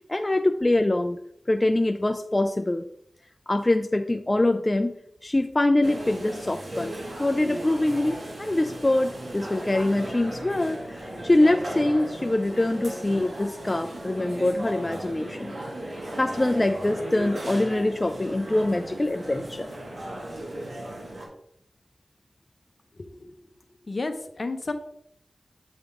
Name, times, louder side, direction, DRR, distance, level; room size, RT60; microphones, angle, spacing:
voice 1, 0.1-1.2 1.5-2.8 3.5-4.9 5.2-6.9 7.2-15.6 15.9-19.7, left 1 dB, 30° left, 7 dB, 0.3 m, -24 dB
sound 1, 5.8-21.3, right 1 dB, 65° right, 1.8 m, -36 dB
voice 2, 23.0-23.4 23.8-24.7, left 3 dB, 55° left, 8 dB, 0.7 m, -32 dB
8.0 x 3.5 x 3.6 m, 0.72 s
wide cardioid pair, 60°, 0 cm